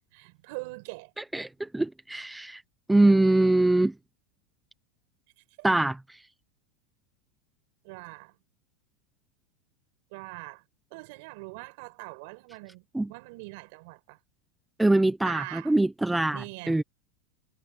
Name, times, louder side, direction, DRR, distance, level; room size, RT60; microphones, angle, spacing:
voice 1, 0.1-1.1 5.6-5.7 7.8-8.4 10.1-10.6 10.9-14.2 15.2-15.8 16.3-16.8, right 26 dB, 55° right, 4.9 m, -42 dB
voice 2, 1.3-2.6 2.9-3.9 5.6-6.0 12.9-13.1 14.8-16.8, right 2 dB, 5° right, 0.9 m, -23 dB
supercardioid pair, 155°, 0 cm